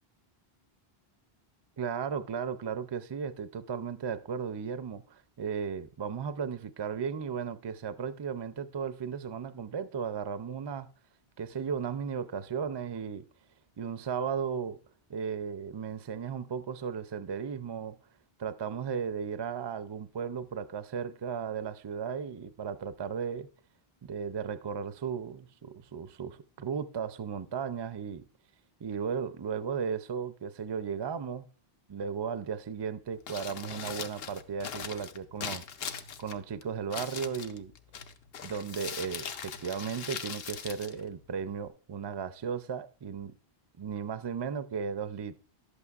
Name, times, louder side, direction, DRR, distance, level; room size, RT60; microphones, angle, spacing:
voice 1, 1.8-10.9 11.4-13.3 13.8-14.8 15.1-18.0 18.4-23.5 24.0-28.2 28.8-31.5 31.9-37.7 38.4-43.3 43.8-45.4, right 6 dB, 45° right, 0.3 m, -35 dB
Crumpling crinkling, 33.1-41.7, left 7 dB, 75° left, 0.9 m, -41 dB
11.0 x 8.2 x 2.4 m
omnidirectional pair, 1.0 m